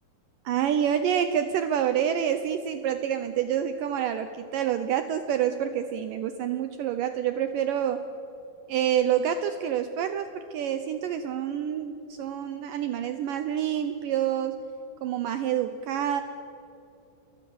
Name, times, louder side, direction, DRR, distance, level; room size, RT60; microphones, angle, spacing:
voice 1, 0.5-8.1 8.7-14.7 15.0-16.2, right 9 dB, 75° right, 9 dB, 2.2 m, -27 dB
28.0 x 23.0 x 7.0 m, 2.9 s
omnidirectional pair, 4.4 m